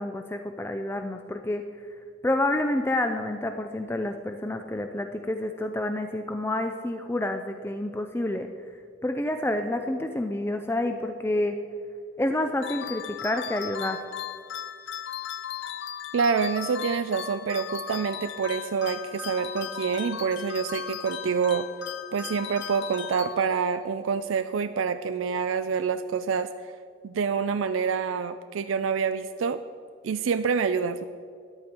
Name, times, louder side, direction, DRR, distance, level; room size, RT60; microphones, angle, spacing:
voice 1, 0.0-1.6 2.2-8.5 9.0-11.6 12.2-14.0, left 1 dB, 10° left, 6 dB, 0.4 m, -28 dB
sound 1, 12.6-23.8, left 8 dB, 65° left, 0.7 m, -37 dB
voice 2, 16.1-21.7 22.1-26.5 27.0-29.6 30.0-31.0, right 6 dB, 85° right, 10 dB, 0.4 m, -27 dB
13.5 x 10.5 x 4.4 m, 2.2 s
head